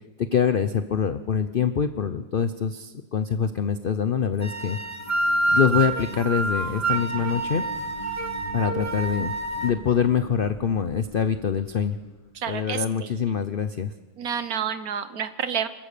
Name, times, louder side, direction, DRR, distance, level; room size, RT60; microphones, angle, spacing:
voice 1, 0.3-4.8 5.5-7.6 8.5-9.3 9.6-12.0 12.5-13.9, left 7 dB, 80° left, 10 dB, 0.4 m, -24 dB
sound 1, 3.8-13.0, left 2 dB, 20° left, 1.5 m, -44 dB
sound 2, 4.4-9.7, right 2 dB, 10° right, 1.0 m, -27 dB
voice 2, 12.3-13.1 14.2-15.7, right 8 dB, 60° right, 11 dB, 1.4 m, -29 dB
27.0 x 15.0 x 6.7 m, 1.3 s
omnidirectional pair, 1.9 m